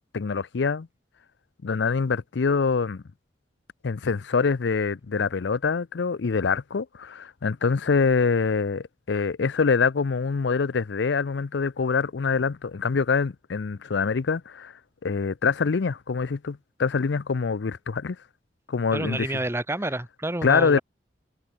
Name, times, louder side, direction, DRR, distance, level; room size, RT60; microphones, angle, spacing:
voice 1, 0.1-0.9 1.6-3.0 3.8-14.7 15.0-18.2 18.7-19.3 20.4-20.8, left 5 dB, 75° left, 0.5 m, -25 dB
voice 2, 18.9-20.8, right 1 dB, 15° right, 1.4 m, -29 dB
head